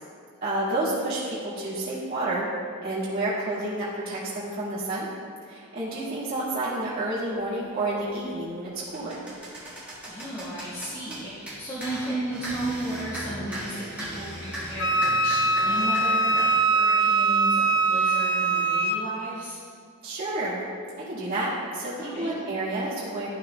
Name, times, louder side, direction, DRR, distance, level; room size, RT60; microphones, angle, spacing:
voice 1, 0.4-2.5 2.8-5.1 5.5-9.2 20.0-20.6 21.1-23.3, right 2 dB, 40° right, -11 dB, 2.0 m, -30 dB
sound 1, 7.7-7.9 8.4-16.6, right 1 dB, 5° right, 1.9 m, -37 dB
voice 2, 10.1-19.6 22.0-22.3, right 1 dB, 20° left, -12 dB, 1.6 m, -34 dB
Wind instrument woodwind instrument, 14.8-19.0, right 3 dB, 50° left, 0.5 m, -22 dB
13.0 x 6.1 x 2.3 m, 2.2 s
head